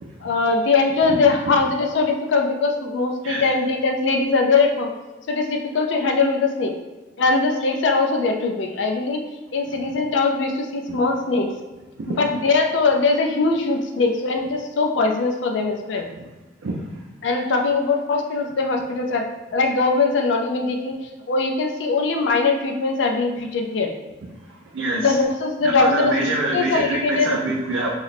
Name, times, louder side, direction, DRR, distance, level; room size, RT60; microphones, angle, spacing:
voice 1, 0.2-4.9 5.3-6.7 7.2-9.2 9.5-11.5 12.2-16.0 17.2-21.0 21.3-23.9 24.9-26.2 26.5-27.3, left 3 dB, 70° left, 3 dB, 0.4 m, -21 dB
voice 2, 16.6-17.0 24.5-25.2 25.6-27.9, right 2 dB, 85° right, -3 dB, 0.4 m, -26 dB
3.0 x 2.0 x 4.0 m, 1.2 s
head